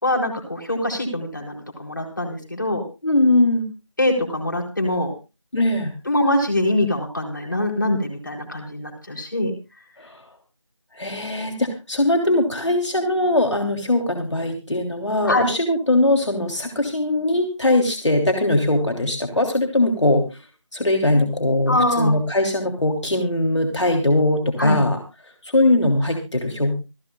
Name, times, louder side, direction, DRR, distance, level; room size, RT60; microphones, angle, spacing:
voice 1, 0.0-2.8 4.0-5.1 6.0-9.5 15.2-15.4 21.7-22.1 24.6-24.8, left 1 dB, 40° left, 1 dB, 4.4 m, -23 dB
voice 2, 3.0-3.7 5.5-5.9 10.0-10.2 10.9-20.4 20.7-25.0 25.4-26.7, left 1 dB, 70° left, 3 dB, 3.2 m, -20 dB
27.0 x 10.5 x 2.3 m, 0.29 s
figure-of-eight pair, 180°, 16 cm